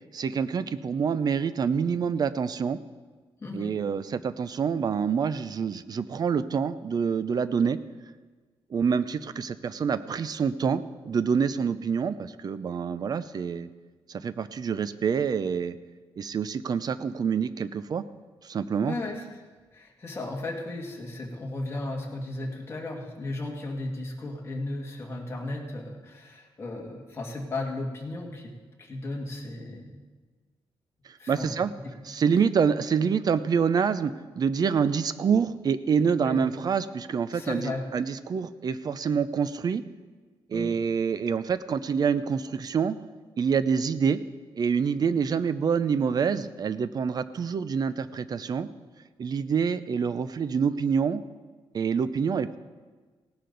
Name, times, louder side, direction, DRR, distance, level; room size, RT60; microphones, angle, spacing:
voice 1, 0.1-2.8 3.5-7.8 8.7-13.7 14.1-15.8 16.2-18.0 18.4-19.0 31.3-31.7 32.1-39.8 40.5-43.0 43.4-44.2 44.5-48.7 49.2-51.2 51.7-52.6, right 6 dB, 45° right, 14 dB, 0.5 m, -26 dB
voice 2, 3.4-3.8 18.8-19.4 19.7-28.5 28.8-30.0 31.2-31.5 31.8-32.0 36.2-36.4 37.3-37.9 40.5-40.8, left 2 dB, 25° left, -2 dB, 2.1 m, -35 dB
17.0 x 11.0 x 4.0 m, 1.4 s
wide cardioid pair, 135°, 9 cm